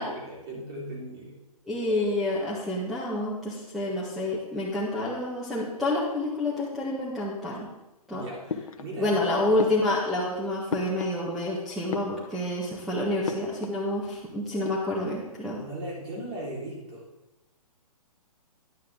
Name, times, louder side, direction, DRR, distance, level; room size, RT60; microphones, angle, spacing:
voice 1, 0.0-1.3 8.1-8.4 8.8-9.4 15.6-17.0, right 1 dB, 40° right, -4 dB, 4.4 m, -37 dB
voice 2, 1.7-7.7 8.1-8.2 9.0-15.6, left 1 dB, ahead, -7 dB, 1.6 m, -28 dB
sound 1, 8.5-9.2 9.6-11.5 11.8-12.6 13.2-13.9 14.1-14.2 14.5-15.2, left 6 dB, 65° left, 1.0 m, -37 dB
11.0 x 9.4 x 3.8 m, 0.99 s
hypercardioid pair, 140°, 19 cm